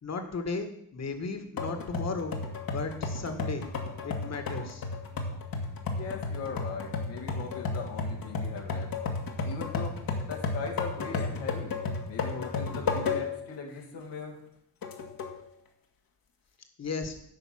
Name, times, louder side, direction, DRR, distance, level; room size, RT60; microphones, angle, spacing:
voice 1, 0.0-2.4 2.7-3.7 4.0-4.9 16.8-17.2, left 4 dB, 40° left, 7 dB, 2.0 m, -35 dB
sound 1, 1.6-13.5 14.0-14.1 14.8-15.4, left 4 dB, 55° left, 2.0 m, -33 dB
voice 2, 5.9-8.9 9.4-9.9 10.3-11.7 12.1-14.3, left 5 dB, 75° left, -1 dB, 2.4 m, -39 dB
9.4 x 5.2 x 7.8 m, 0.74 s
supercardioid pair, 75°, 42 cm